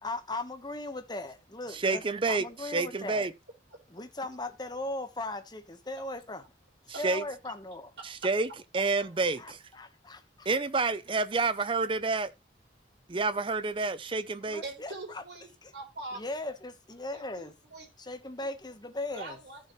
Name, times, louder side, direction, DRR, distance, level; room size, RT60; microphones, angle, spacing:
voice 1, 0.0-3.2 3.9-6.4 7.0-7.9 8.9-9.0 9.4-10.5 14.5-15.2 15.6-15.7 16.1-17.5 18.0-19.4, left 2 dB, 20° left, 1.2 m, -38 dB
voice 2, 1.7-3.3 6.9-7.2 8.0-9.6 10.5-12.3 13.1-14.6, right 3 dB, 25° right, 0.5 m, -29 dB
voice 3, 14.6-16.2 17.1-17.9 19.1-19.6, right 2 dB, 60° right, 4.2 m, -43 dB
14.5 x 6.5 x 3.1 m
head